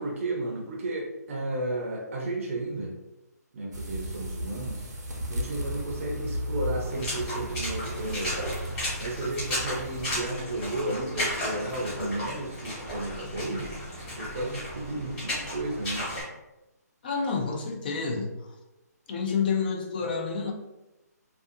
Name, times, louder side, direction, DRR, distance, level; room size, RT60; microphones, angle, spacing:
voice 1, 0.0-2.9 3.5-4.9 5.3-8.6 9.0-13.7 14.2-16.1, right 2 dB, 50° right, -1 dB, 0.6 m, -33 dB
sound 1, 3.7-10.2, equal, 85° right, 0.7 m, -35 dB
Water / Splash splatter, 6.9-16.2, left 1 dB, 15° left, 1.2 m, -34 dB
voice 2, 17.0-18.4 19.1-20.5, left 5 dB, 35° left, 2 dB, 0.4 m, -29 dB
2.5 x 2.3 x 2.6 m, 0.99 s
hypercardioid pair, 155°, 9 cm